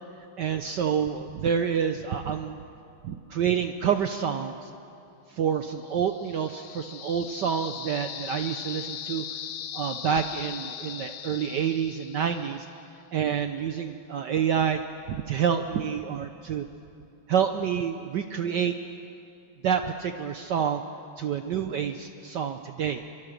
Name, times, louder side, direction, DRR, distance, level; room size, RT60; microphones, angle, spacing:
voice 1, 0.4-2.6 3.0-4.7 5.3-9.2 9.7-12.6 13.1-14.8 15.1-16.7 17.3-18.7 19.6-20.8 21.2-23.0, right 8 dB, 65° right, 7 dB, 1.2 m, -28 dB
sound 1, 5.8-12.8, left 10 dB, 80° left, 1.8 m, -39 dB
25.5 x 24.0 x 6.6 m, 2.6 s
omnidirectional pair, 2.4 m